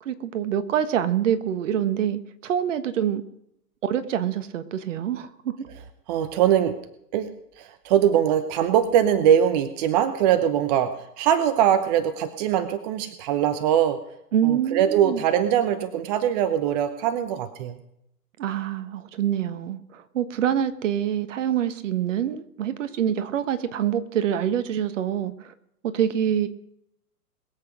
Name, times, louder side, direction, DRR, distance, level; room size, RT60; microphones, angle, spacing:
voice 1, 0.0-3.2 3.8-5.5 14.3-15.2 18.4-25.5 25.9-26.5, right 9 dB, 50° right, 1.4 m, -26 dB
voice 2, 6.1-6.8 7.1-7.3 7.6-14.0 14.4-17.8, right 10 dB, 25° right, 0.8 m, -22 dB
22.0 x 8.2 x 5.0 m
hypercardioid pair, 135°, 47 cm